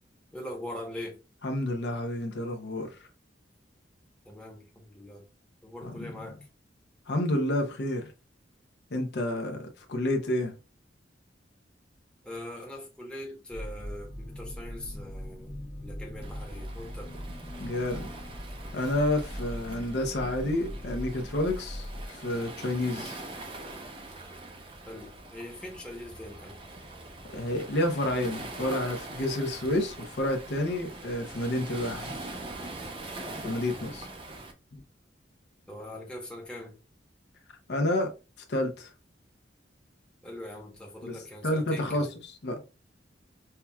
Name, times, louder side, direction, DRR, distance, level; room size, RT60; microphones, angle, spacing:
voice 1, 0.3-1.2 4.2-5.2 5.6-6.4 12.2-17.1 24.9-26.6 33.7-34.0 35.7-36.7 40.2-42.1, left 1 dB, 5° left, 0.9 m, -42 dB
voice 2, 1.4-2.9 5.8-6.1 7.1-8.1 8.9-10.5 17.6-18.1 18.7-23.2 27.3-32.2 33.4-34.1 37.7-38.1 38.5-38.9 41.0-41.2 41.4-42.1 42.4-42.7, left 1 dB, 60° left, 0.6 m, -29 dB
sound 1, 13.5-22.1, equal, 20° left, 0.4 m, -40 dB
Waves surf, 16.2-34.5, right 2 dB, 30° right, 0.5 m, -43 dB
5.6 x 2.3 x 2.2 m
head